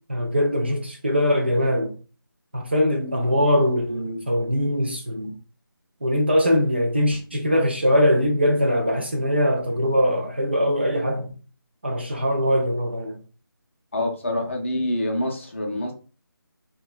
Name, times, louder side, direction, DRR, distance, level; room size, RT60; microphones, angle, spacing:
voice 1, 0.1-1.9 2.5-5.4 6.0-11.3 11.8-13.2, equal, 30° right, 0.3 m, -22 dB
voice 2, 13.9-15.9, left 1 dB, 35° left, 0.5 m, -26 dB
2.8 x 2.2 x 2.3 m
figure-of-eight pair, 165°, 12 cm